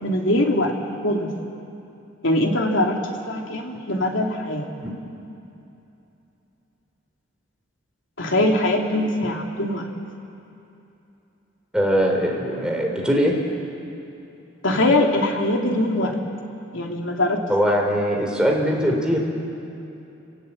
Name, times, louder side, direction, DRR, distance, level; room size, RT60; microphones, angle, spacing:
voice 1, 0.0-0.7 1.0-1.3 2.2-4.7 8.2-9.9 14.6-16.2 16.7-17.4, left 1 dB, 65° left, 1 dB, 2.9 m, -22 dB
voice 2, 11.7-13.4 17.5-19.2, equal, 5° right, 0 dB, 3.6 m, -21 dB
30.0 x 18.5 x 8.6 m, 2.8 s
head